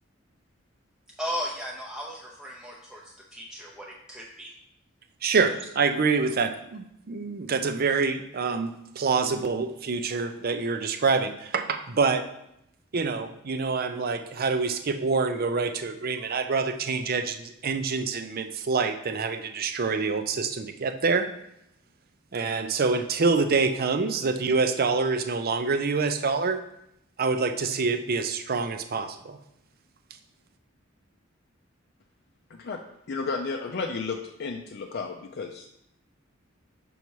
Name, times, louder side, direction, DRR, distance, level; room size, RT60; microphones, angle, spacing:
voice 1, 1.2-4.5, equal, 5° right, -3 dB, 0.6 m, -36 dB
voice 2, 5.2-12.2 12.9-21.3 22.3-26.6 27.2-29.4, right 4 dB, 50° right, 8 dB, 0.6 m, -26 dB
voice 3, 32.5-32.8 33.1-35.8, left 4 dB, 55° left, 3 dB, 0.5 m, -33 dB
5.8 x 5.4 x 4.6 m, 0.79 s
head